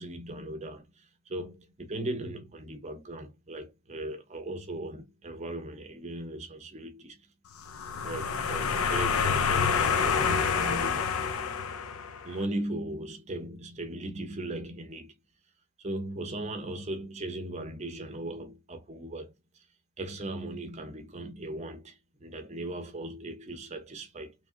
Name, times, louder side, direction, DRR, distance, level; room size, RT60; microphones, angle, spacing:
voice 1, 0.0-7.2 8.0-11.3 12.2-15.1 15.8-19.6 20.0-24.3, right 1 dB, 30° right, 0.7 m, -38 dB
sound 1, 7.6-12.3, left 6 dB, 75° left, 0.5 m, -27 dB
3.1 x 2.3 x 2.5 m
head